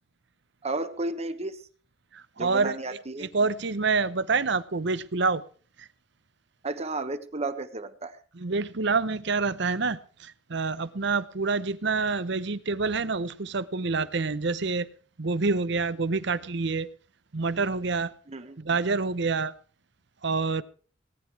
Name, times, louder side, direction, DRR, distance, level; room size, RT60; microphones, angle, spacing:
voice 1, 0.6-1.6 2.4-3.3 6.6-8.2 18.3-18.6, right 2 dB, 35° right, 1.2 m, -33 dB
voice 2, 2.1-2.8 3.2-5.4 5.8-5.9 8.3-14.9 15.2-16.9 17.3-18.1 18.6-19.5 20.2-20.6, right 4 dB, 65° right, 0.9 m, -27 dB
18.5 x 10.5 x 4.8 m
head